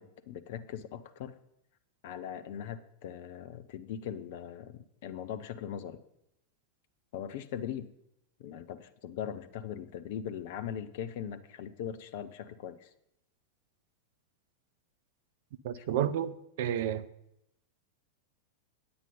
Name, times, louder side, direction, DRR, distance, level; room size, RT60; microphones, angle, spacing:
voice 1, 0.0-1.3 2.0-6.0 7.1-7.9 8.4-12.9 15.8-16.0, left 9 dB, 50° left, 0.6 m, -40 dB
voice 2, 15.6-16.3 16.6-17.1, right 10 dB, 55° right, 0.6 m, -30 dB
9.0 x 8.7 x 5.4 m
figure-of-eight pair, 90°, 0 cm